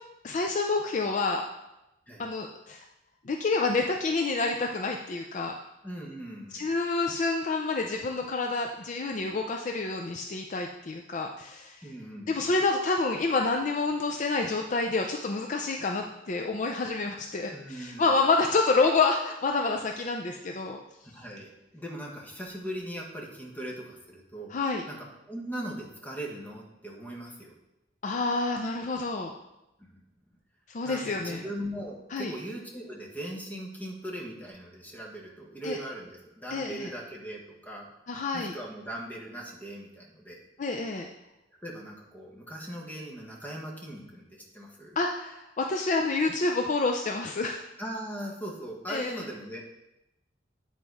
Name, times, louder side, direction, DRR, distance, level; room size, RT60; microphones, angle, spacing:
voice 1, 0.2-1.5 2.2-2.9 3.2-5.6 6.5-11.8 12.3-20.8 24.5-24.8 28.0-29.3 30.7-31.4 32.1-32.3 35.6-35.8 36.5-36.9 38.1-38.5 40.6-41.1 45.0-47.6 48.9-49.2, left 3 dB, 40° left, 2 dB, 0.5 m, -28 dB
voice 2, 5.8-6.6 11.8-12.4 17.5-18.0 21.0-24.5 24.9-27.5 29.8-30.0 30.8-40.4 41.6-45.0 47.8-49.6, right 1 dB, 10° left, -2 dB, 1.4 m, -39 dB
8.8 x 4.1 x 4.8 m, 0.91 s
head